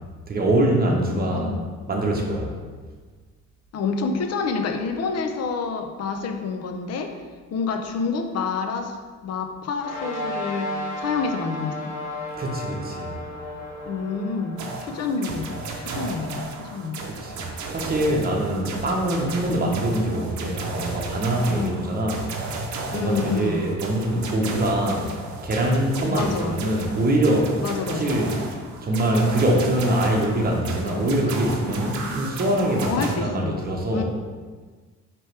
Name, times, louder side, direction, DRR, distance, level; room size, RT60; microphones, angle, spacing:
voice 1, 0.3-1.5 1.9-2.5 12.4-13.1 17.1-17.4 17.7-22.3 22.9-25.1 25.4-27.6 27.9-28.4 28.8-34.0, right 1 dB, 30° right, 0 dB, 0.9 m, -23 dB
voice 2, 0.8-1.6 3.7-7.1 7.5-9.0 9.2-10.7 11.0-11.9 13.8-15.5 15.8-17.1 18.5-18.6 21.5-21.8 22.9-23.7 26.1-26.6 27.6-28.2 32.8-33.6 33.9-34.0, left 4 dB, 55° left, 6 dB, 0.5 m, -28 dB
sound 1, 9.8-22.5, left 1 dB, 75° left, 1.0 m, -37 dB
sound 2, 14.6-33.2, right 3 dB, 70° right, 0.7 m, -34 dB
4.6 x 3.0 x 3.3 m, 1.5 s
cardioid pair, 90°, 30 cm